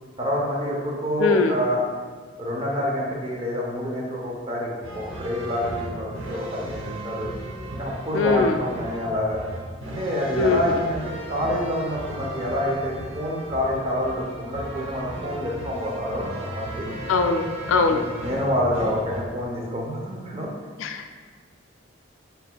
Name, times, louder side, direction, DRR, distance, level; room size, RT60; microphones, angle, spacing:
voice 1, 0.2-1.8 2.4-7.3 7.8-9.4 9.9-16.9 17.9-20.5, equal, 30° right, -2 dB, 0.7 m, -27 dB
voice 2, 1.2-1.6 8.1-8.6 10.4-10.8 17.1-18.0 20.8-21.0, left 4 dB, 80° left, 6 dB, 0.3 m, -22 dB
sound 1, 4.8-19.2, right 1 dB, 80° right, 0.7 m, -36 dB
4.3 x 4.0 x 2.2 m, 1.5 s
head